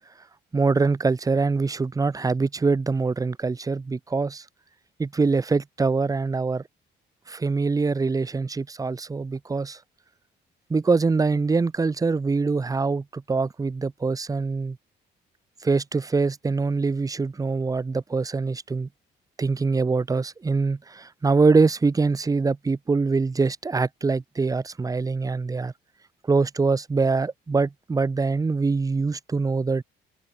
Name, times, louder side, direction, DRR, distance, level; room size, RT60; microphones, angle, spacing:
voice 1, 0.5-4.4 5.0-6.6 7.3-9.8 10.7-14.8 15.6-18.9 19.4-25.7 26.3-29.8, right 4 dB, 15° right, 0.5 m, -24 dB
open air
cardioid pair, 90°, 20 cm